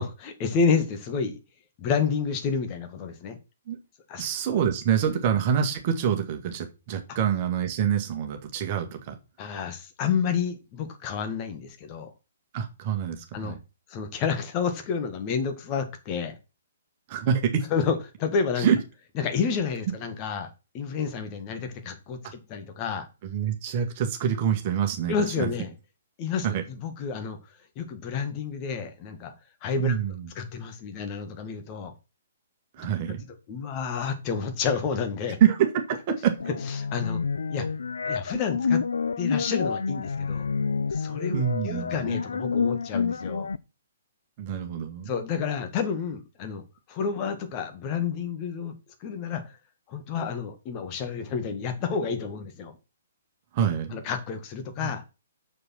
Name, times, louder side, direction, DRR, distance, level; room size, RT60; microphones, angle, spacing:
voice 1, 0.0-1.4 1.8-3.4 4.1-4.2 9.4-12.1 13.3-13.6 13.9-16.4 17.7-18.7 19.2-23.1 25.1-25.7 26.2-27.4 27.8-29.3 29.6-30.0 30.4-31.9 33.5-35.4 36.7-37.2 37.5-37.7 38.0-38.8 39.2-40.5 40.9-43.5 45.1-46.6 46.9-48.7 49.0-49.6 49.9-52.7 53.9-55.0, left 6 dB, 25° left, 6 dB, 1.7 m, -30 dB
voice 2, 4.2-9.1 12.5-13.6 17.1-17.6 18.6-18.8 23.2-25.5 26.4-26.6 29.8-30.3 32.8-33.2 35.4-36.3 41.3-42.0 44.4-45.1 53.5-54.0 54.8-54.9, right 8 dB, 35° right, 5 dB, 1.9 m, -26 dB
sound 1, 36.4-43.6, left 5 dB, 65° left, 0.5 m, -28 dB
7.0 x 6.7 x 6.0 m, 0.30 s
figure-of-eight pair, 125°, 0 cm